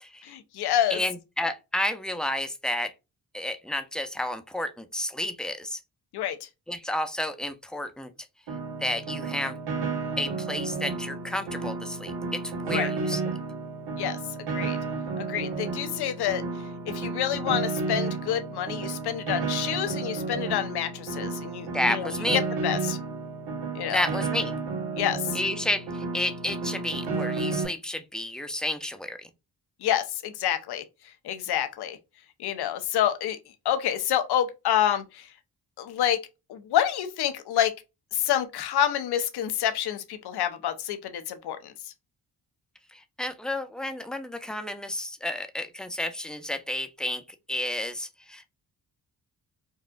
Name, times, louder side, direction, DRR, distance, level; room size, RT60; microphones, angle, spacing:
voice 1, 0.2-1.0 6.1-6.4 12.7-12.9 14.0-14.2 14.5-14.8 15.2-16.4 16.9-23.0 23.7-24.1 25.0-25.3 29.8-30.8 31.2-32.0 32.4-33.4 33.6-35.3 35.8-36.2 36.5-37.7 38.1-41.9, left 10 dB, 80° left, 0.7 m, -28 dB
voice 2, 0.9-2.9 3.3-5.8 6.7-8.1 8.8-9.6 10.2-13.4 21.7-22.5 23.9-24.6 25.3-29.3 42.9-48.5, left 1 dB, ahead, 0.5 m, -31 dB
Piano, 8.5-27.6, right 4 dB, 90° right, 1.0 m, -32 dB
4.1 x 2.4 x 2.3 m
cardioid pair, 80°, 39 cm